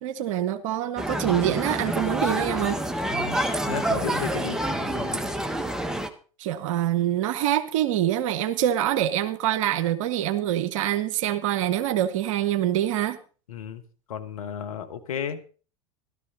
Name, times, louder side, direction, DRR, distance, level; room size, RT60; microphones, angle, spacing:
voice 1, 0.0-2.8 6.4-13.2, right 12 dB, 65° right, 11 dB, 0.9 m, -25 dB
sound 1, 1.0-6.1, right 1 dB, 5° right, 1.2 m, -27 dB
voice 2, 3.7-5.2 13.5-13.8 14.1-15.5, left 8 dB, 75° left, 8 dB, 1.4 m, -34 dB
13.5 x 13.0 x 4.0 m, 0.37 s
hypercardioid pair, 85°, 18 cm